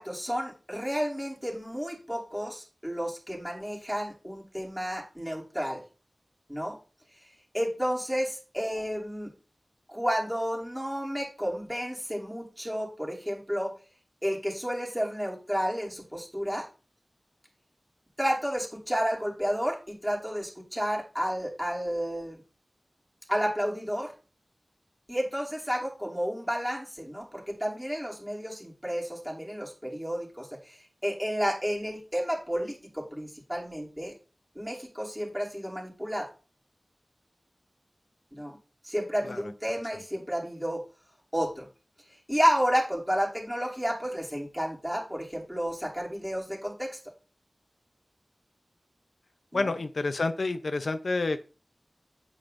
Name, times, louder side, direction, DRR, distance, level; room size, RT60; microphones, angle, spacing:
voice 1, 0.0-5.8 6.5-6.8 7.5-9.3 9.9-13.7 14.2-16.7 18.2-22.4 23.3-24.1 25.1-34.2 34.5-36.3 38.3-38.6 38.8-40.9 41.3-41.7 42.3-47.0 49.5-49.7, equal, 5° right, -2 dB, 2.8 m, -31 dB
voice 2, 49.5-51.4, left 3 dB, 75° left, 9 dB, 0.6 m, -29 dB
8.8 x 7.5 x 2.6 m, 0.34 s
wide cardioid pair, 75°, 0 cm